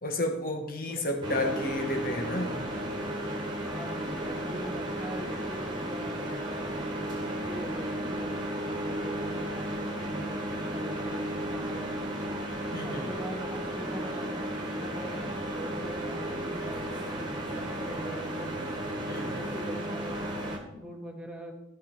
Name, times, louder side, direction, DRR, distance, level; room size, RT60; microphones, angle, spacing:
voice 1, 0.0-2.6 12.7-13.1 19.0-19.4, left 1 dB, 50° left, 3 dB, 1.7 m, -31 dB
voice 2, 0.9-1.2 3.6-12.4 12.8-18.5 19.0-21.5, right 1 dB, 5° right, 0 dB, 1.5 m, -42 dB
sound 1, 1.2-20.6, right 1 dB, 25° right, 1.8 m, -34 dB
16.0 x 5.6 x 4.5 m, 0.89 s
head